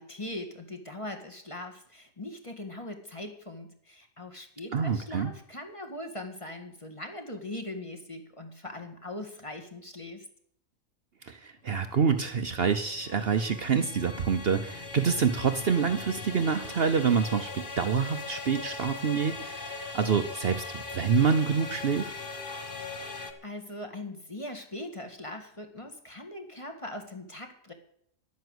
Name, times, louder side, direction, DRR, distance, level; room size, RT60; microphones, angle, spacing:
voice 1, 0.0-10.2 23.4-27.7, left 1 dB, 25° left, 5 dB, 1.9 m, -40 dB
voice 2, 4.7-5.3 11.2-22.1, right 6 dB, 50° right, 9 dB, 1.0 m, -27 dB
sound 1, 11.9-23.3, left 4 dB, 40° left, 1.4 m, -40 dB
11.5 x 9.5 x 8.0 m, 0.67 s
omnidirectional pair, 1.4 m